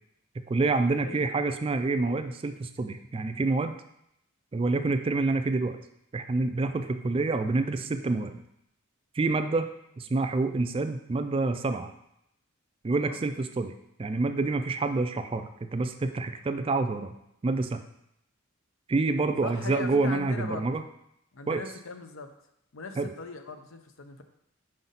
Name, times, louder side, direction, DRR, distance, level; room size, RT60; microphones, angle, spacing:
voice 1, 0.5-3.7 4.5-5.8 6.1-8.4 9.1-9.7 10.0-11.9 12.8-13.7 14.0-17.2 17.4-17.8 18.9-20.8 21.5-21.6 23.0-23.1, right 3 dB, 25° right, 9 dB, 0.3 m, -27 dB
voice 2, 19.4-20.7 21.3-22.3 22.7-24.2, left 4 dB, 75° left, 7 dB, 0.7 m, -40 dB
5.6 x 5.1 x 4.0 m, 0.79 s
head